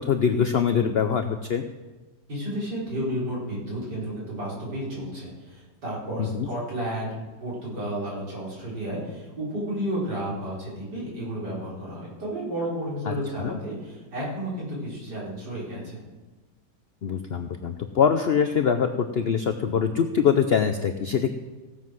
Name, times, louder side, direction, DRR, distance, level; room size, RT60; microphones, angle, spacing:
voice 1, 0.0-1.6 6.2-6.5 13.4-13.6 17.0-21.4, left 7 dB, 70° left, 7 dB, 0.5 m, -23 dB
voice 2, 2.3-7.1 7.4-16.0, right 1 dB, 70° right, -6 dB, 4.9 m, -32 dB
16.5 x 7.4 x 6.1 m, 1.2 s
omnidirectional pair, 1.8 m